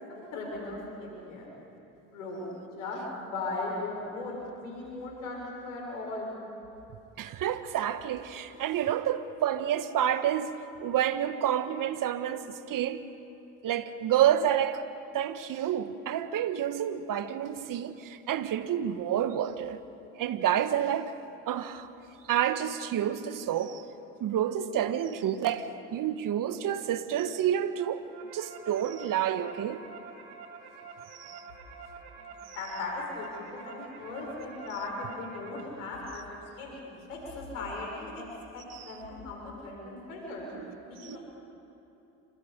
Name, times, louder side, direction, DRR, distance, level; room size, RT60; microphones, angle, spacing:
voice 1, 0.1-1.5 2.0-2.5 2.8-6.3 32.2-38.3 38.5-40.5 40.9-41.2, left 2 dB, 85° left, 6.8 m, -38 dB
voice 2, 7.2-13.0 13.6-14.8 15.1-19.8 20.1-21.1 21.5-21.9 22.3-23.8 24.2-28.0 28.3-29.8 31.1-31.4 32.5-32.6 38.7-38.9 40.5-40.7 41.0-41.2, right 10 dB, 55° right, 1.4 m, -29 dB
sound 1, 27.8-35.6, right 5 dB, 80° right, 2.8 m, -48 dB
28.0 x 25.5 x 5.2 m
hypercardioid pair, 65°, 40 cm